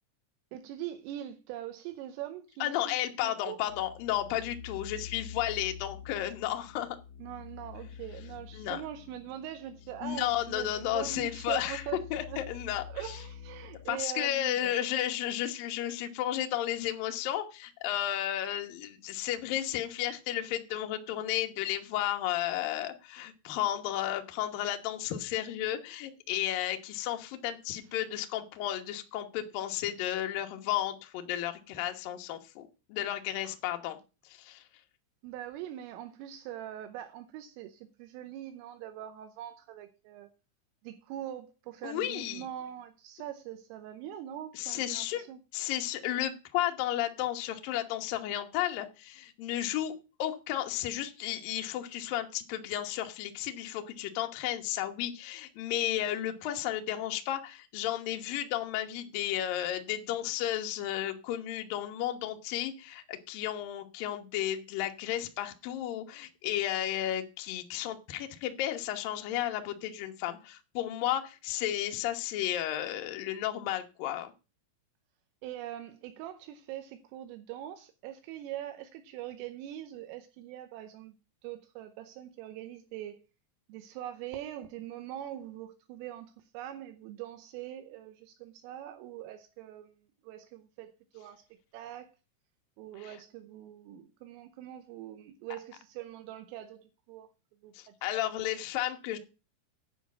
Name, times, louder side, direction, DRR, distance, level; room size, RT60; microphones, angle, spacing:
voice 1, 0.5-3.6 7.2-12.4 12.9-14.8 33.4-33.6 35.2-40.3 40.8-45.4 75.4-81.1 81.4-83.2 83.7-91.5 91.7-92.1 92.8-97.3 97.6-98.4, right 12 dB, 80° right, 3.4 m, -43 dB
voice 2, 2.6-7.0 8.5-8.8 10.0-11.8 12.1-13.2 13.9-34.0 34.2-34.6 41.8-42.4 44.5-45.3 45.5-49.9 50.2-74.3 93.0-93.2 97.7-99.2, left 12 dB, 75° left, 2.0 m, -33 dB
sound 1, 3.7-13.9, left 7 dB, 35° left, 2.1 m, -47 dB
10.0 x 5.3 x 8.3 m
omnidirectional pair, 5.9 m